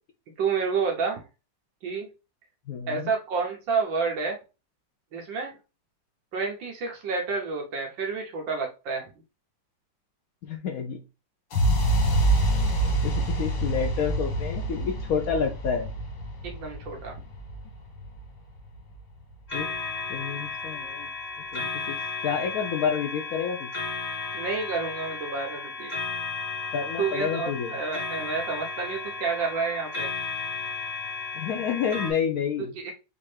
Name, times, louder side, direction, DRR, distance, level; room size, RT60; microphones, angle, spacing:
voice 1, 0.4-1.3 1.8-2.1 2.9-4.4 5.1-5.6 6.3-9.0 16.4-17.1 24.3-25.9 27.0-30.1 32.7-32.9, right 5 dB, 75° right, 1 dB, 1.6 m, -29 dB
voice 2, 2.7-3.1 10.4-11.0 13.0-15.9 19.5-19.7 20.1-21.1 21.5-22.0 22.2-23.7 26.7-27.7 31.4-32.7, left 7 dB, 75° left, 3 dB, 0.8 m, -29 dB
sound 1, 11.5-19.4, right 1 dB, 60° left, 1.6 m, -27 dB
sound 2, 19.5-32.1, left 4 dB, 25° left, 1.3 m, -34 dB
5.4 x 2.6 x 3.2 m, 0.29 s
omnidirectional pair, 2.1 m